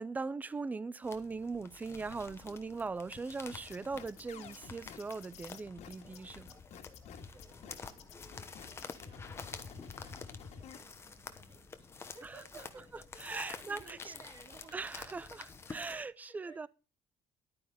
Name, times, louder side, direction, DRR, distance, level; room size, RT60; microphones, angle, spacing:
voice 1, 0.0-6.5 13.2-14.0 14.7-16.7, right 4 dB, 15° right, 0.5 m, -40 dB
sound 1, 1.0-16.0, left 4 dB, 20° left, 1.0 m, -50 dB
sound 2, 3.5-10.8, left 6 dB, 70° left, 2.0 m, -50 dB
voice 2, 7.3-14.8 15.2-15.3 15.7-16.6, right 3 dB, 40° right, 2.8 m, -58 dB
11.0 x 9.4 x 4.9 m
cardioid pair, 180°, 12 cm